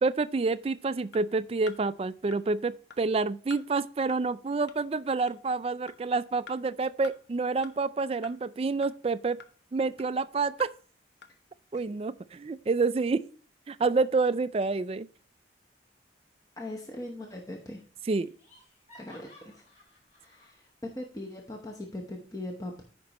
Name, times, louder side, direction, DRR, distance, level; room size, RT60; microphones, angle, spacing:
voice 1, 0.0-9.4 9.7-10.7 11.7-13.2 13.7-15.1 18.1-18.3, right 3 dB, 30° right, 0.3 m, -28 dB
sound 1, 1.1-1.2 1.7-1.8 2.3-2.4 2.9-3.0 3.5-3.6 4.1-4.2 4.7-4.8 5.3-5.4 5.9-6.0 6.5-6.6 7.0-7.2 7.6-7.7 8.2-8.3 8.8-8.9 9.4-9.5 10.0-10.1 10.6-10.7 11.2-11.3, left 6 dB, 65° left, 0.9 m, -46 dB
voice 2, 16.6-17.8 18.9-19.6 20.2-22.8, left 1 dB, 20° left, 0.9 m, -40 dB
Laughter, 17.6-17.7 18.1-20.6, left 1 dB, 40° left, 3.5 m, -57 dB
14.0 x 5.3 x 3.0 m
head